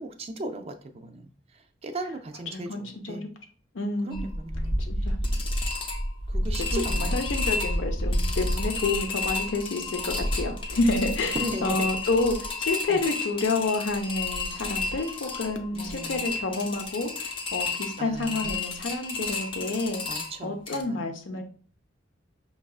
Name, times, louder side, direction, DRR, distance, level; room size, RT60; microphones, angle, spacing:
voice 1, 0.0-3.3 4.0-5.1 6.3-7.6 11.0-11.9 12.9-13.0 15.7-16.3 18.0-18.8 20.1-21.4, right 1 dB, 30° right, 7 dB, 0.3 m, -38 dB
voice 2, 2.5-3.2 3.7-4.3 4.9-5.2 6.6-11.4 11.6-20.0 20.4-21.4, left 3 dB, 80° left, 5 dB, 0.7 m, -29 dB
sound 1, 4.1-20.8, left 2 dB, 30° left, 0.5 m, -30 dB
5.4 x 2.3 x 2.3 m, 0.42 s
head